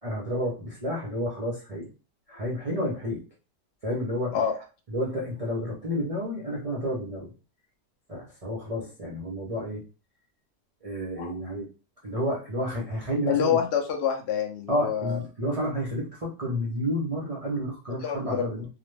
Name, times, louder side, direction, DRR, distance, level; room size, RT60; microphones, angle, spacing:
voice 1, 0.0-1.9 2.3-3.2 3.8-4.4 4.9-7.3 8.1-9.8 10.8-11.7 12.0-13.6 14.7-18.7, equal, 65° right, -5 dB, 0.3 m, -30 dB
voice 2, 13.3-15.2 18.0-18.5, left 8 dB, 70° left, 3 dB, 0.6 m, -26 dB
2.9 x 2.1 x 3.2 m, 0.32 s
omnidirectional pair, 1.9 m